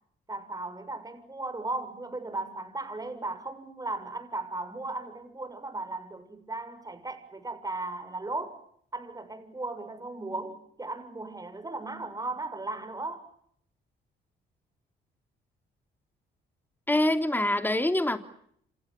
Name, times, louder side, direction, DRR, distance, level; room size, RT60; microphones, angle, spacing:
voice 1, 0.3-8.6 8.9-13.3, right 2 dB, 20° right, 6.7 m, -36 dB
voice 2, 16.9-18.2, left 1 dB, 10° left, 3.2 m, -25 dB
28.5 x 27.5 x 7.4 m
cardioid pair, 90°, 20 cm